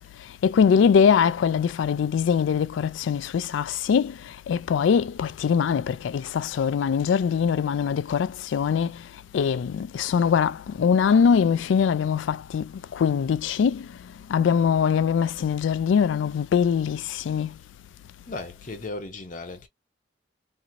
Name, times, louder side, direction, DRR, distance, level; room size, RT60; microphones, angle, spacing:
voice 1, 0.4-4.1 4.5-8.9 9.3-12.6 13.0-13.8 14.3-17.0 17.3-17.5, left 7 dB, 75° left, 0.3 m, -22 dB
voice 2, 18.3-19.7, left 2 dB, 40° left, 0.8 m, -36 dB
2.9 x 2.6 x 2.5 m
head